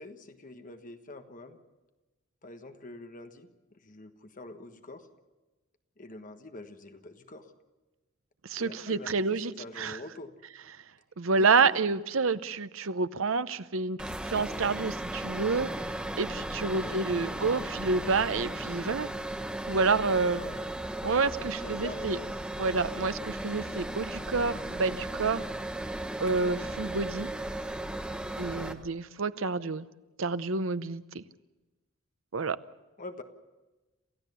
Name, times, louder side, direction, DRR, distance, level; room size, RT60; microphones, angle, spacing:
voice 1, 0.0-1.6 2.4-3.5 3.8-5.1 6.0-7.5 8.6-10.3 11.3-11.8 16.6-17.4 20.3-20.6 21.6-22.3 28.5-28.7 33.0-33.2, left 2 dB, 40° left, 1.4 m, -45 dB
voice 2, 8.4-10.0 11.2-14.0 14.2-15.7 16.2-19.1 19.7-20.4 21.0-22.2 22.6-25.5 26.2-27.3 28.4-29.9 30.2-31.2 32.3-32.6, right 4 dB, 75° right, 0.8 m, -28 dB
sound 1, 14.0-28.7, right 1 dB, 5° right, 1.3 m, -36 dB
28.0 x 15.5 x 6.9 m
head